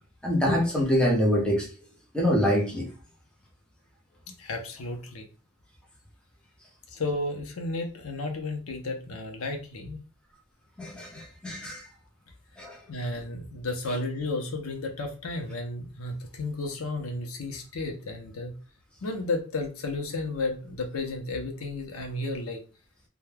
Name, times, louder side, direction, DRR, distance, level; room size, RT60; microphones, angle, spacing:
voice 1, 0.2-1.7 2.1-2.9 10.8-11.8 12.6-12.8, equal, 5° left, -2 dB, 0.7 m, -25 dB
voice 2, 4.4-5.3 6.9-10.0 12.9-18.5 19.0-22.6, left 2 dB, 85° left, 3 dB, 0.6 m, -33 dB
2.2 x 2.2 x 3.2 m, 0.35 s
head